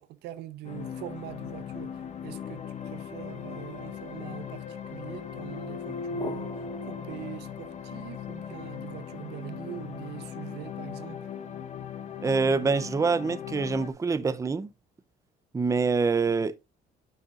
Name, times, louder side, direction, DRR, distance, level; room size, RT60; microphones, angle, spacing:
voice 1, 0.0-11.2, right 14 dB, 85° right, 0.9 m, -43 dB
sound 1, 0.6-13.9, left 9 dB, 45° left, 1.6 m, -39 dB
sound 2, 1.9-7.8, left 2 dB, 25° left, 1.8 m, -41 dB
voice 2, 12.2-14.7 15.5-16.5, right 4 dB, 20° right, 0.6 m, -25 dB
8.8 x 8.4 x 2.5 m
cardioid pair, 110°, 17 cm